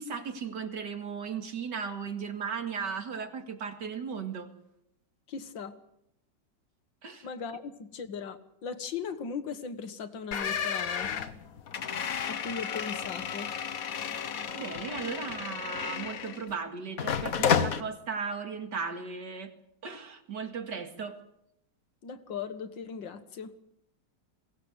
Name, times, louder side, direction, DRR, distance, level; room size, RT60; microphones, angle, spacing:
voice 1, 0.0-4.5 7.0-7.3 14.5-19.5 19.8-21.2, right 6 dB, 70° right, 7 dB, 2.6 m, -36 dB
voice 2, 5.3-5.8 7.2-11.1 12.3-13.5 22.0-23.6, left 6 dB, 85° left, 10 dB, 2.2 m, -38 dB
sound 1, 10.3-16.5 17.0-17.8, left 7 dB, 55° left, 1.4 m, -32 dB
22.0 x 17.5 x 8.1 m, 0.80 s
omnidirectional pair, 2.0 m